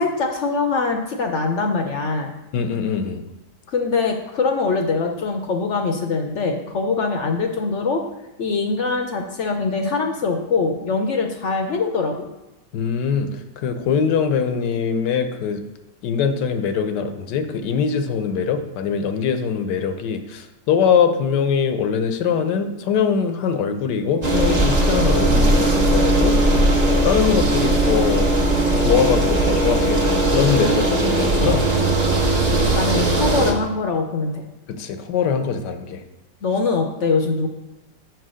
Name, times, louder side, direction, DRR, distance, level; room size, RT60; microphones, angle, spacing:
voice 1, 0.0-2.3 3.7-8.0 8.4-12.3 32.2-34.4 36.4-37.5, left 4 dB, 60° left, 4 dB, 0.8 m, -23 dB
voice 2, 2.5-3.2 12.7-15.6 16.0-26.4 26.9-28.3 28.8-31.6 34.7-36.0, left 7 dB, 85° left, 8 dB, 1.3 m, -22 dB
sound 1, 24.2-33.5, right 1 dB, 30° right, 1.0 m, -18 dB
6.2 x 4.6 x 6.2 m, 1.0 s
omnidirectional pair, 1.8 m